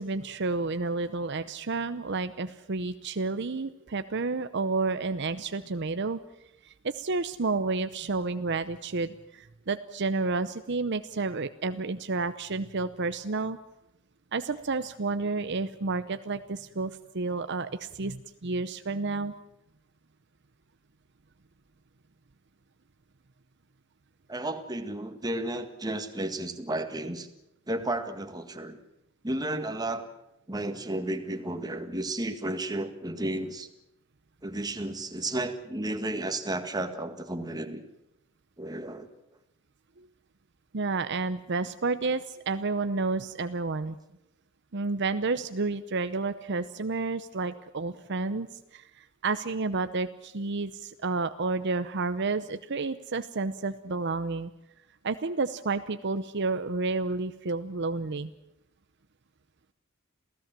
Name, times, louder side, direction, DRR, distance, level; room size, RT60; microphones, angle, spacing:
voice 1, 0.0-6.2 6.6-13.6 14.3-19.3 40.0-40.1 40.7-44.0 44.7-54.5 55.0-58.3, right 3 dB, 55° right, 11 dB, 0.8 m, -30 dB
voice 2, 24.3-27.3 27.7-28.8 29.2-30.1 30.5-33.7 34.4-37.8 38.6-39.1, right 1 dB, 20° right, 7 dB, 1.8 m, -33 dB
28.0 x 16.5 x 7.5 m, 0.87 s
head